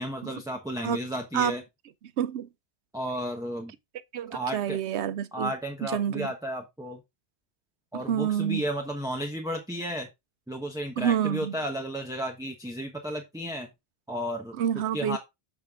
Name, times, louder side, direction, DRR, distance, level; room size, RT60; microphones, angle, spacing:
voice 1, 0.0-1.6 2.9-3.7 4.3-4.8 5.3-7.0 7.9-10.1 10.5-13.7 14.1-14.5 14.9-15.2, equal, 5° right, 1.2 m, -33 dB
voice 2, 2.2-2.5 4.1-5.5 5.8-6.3 7.9-8.6 11.0-11.6 14.6-15.2, right 9 dB, 80° right, 0.9 m, -28 dB
8.2 x 5.8 x 3.6 m
omnidirectional pair, 1.2 m